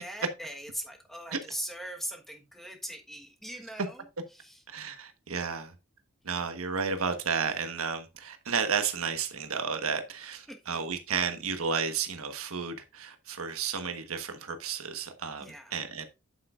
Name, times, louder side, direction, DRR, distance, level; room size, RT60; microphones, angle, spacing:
voice 1, 0.0-4.6 10.5-10.8 15.4-15.8, equal, ahead, 1.3 m, -41 dB
voice 2, 4.7-5.7 6.2-15.5 15.7-16.1, right 5 dB, 80° right, 1.3 m, -32 dB
8.6 x 7.9 x 2.5 m
head